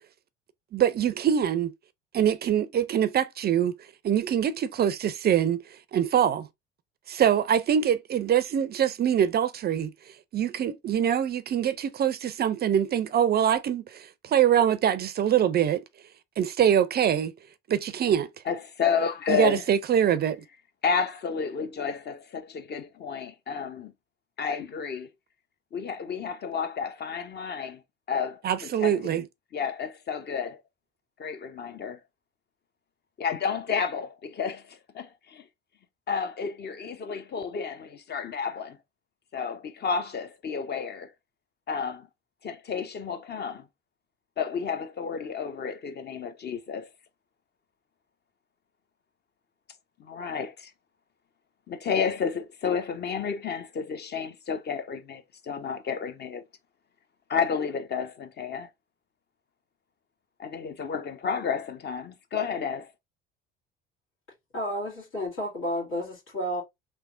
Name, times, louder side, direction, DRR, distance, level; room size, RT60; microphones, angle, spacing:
voice 1, 0.7-1.7 2.1-3.7 4.0-5.6 5.9-6.5 7.1-9.9 10.3-15.8 16.4-17.3 17.7-18.3 19.3-20.4 28.4-29.3, right 9 dB, 35° right, 0.4 m, -24 dB
voice 2, 18.5-19.6 20.8-23.9 24.4-25.1 25.7-27.8 28.1-29.2 29.5-30.6 31.2-32.0 33.2-35.4 36.1-38.8 39.3-41.1 41.7-42.1 42.4-43.7 44.4-46.9 50.0-50.7 51.7-56.4 57.3-58.7 60.4-62.9, left 6 dB, 35° left, 0.7 m, -31 dB
voice 3, 64.5-66.6, equal, 80° left, 2.2 m, -31 dB
3.3 x 3.0 x 2.5 m
hypercardioid pair, 70°, 29 cm